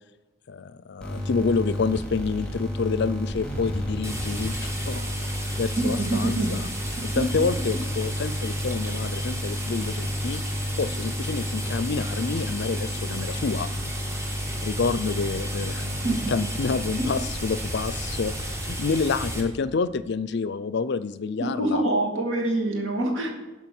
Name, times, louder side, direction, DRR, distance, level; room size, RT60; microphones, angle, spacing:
voice 1, 0.5-5.1 5.6-6.7 7.1-10.4 10.8-13.7 14.6-15.9 16.3-21.8, left 4 dB, 55° left, 15 dB, 0.5 m, -28 dB
sound 1, 1.0-19.8, left 1 dB, 5° left, 2.8 m, -32 dB
sound 2, 4.0-19.4, right 1 dB, 15° right, 1.4 m, -35 dB
voice 2, 5.8-6.5 16.0-16.2 21.4-23.3, right 2 dB, 75° right, 1 dB, 2.4 m, -25 dB
12.0 x 5.9 x 6.0 m, 1.2 s
head